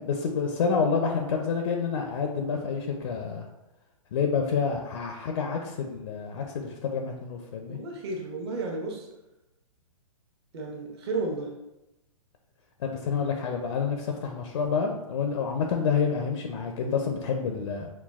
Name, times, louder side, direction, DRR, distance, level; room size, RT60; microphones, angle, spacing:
voice 1, 0.0-3.5 4.1-7.8 12.8-17.9, left 5 dB, 55° left, 3 dB, 0.5 m, -28 dB
voice 2, 7.7-9.1 10.5-11.5, right 3 dB, 45° right, 0 dB, 1.0 m, -32 dB
5.8 x 2.2 x 2.4 m, 0.97 s
hypercardioid pair, 150°, 18 cm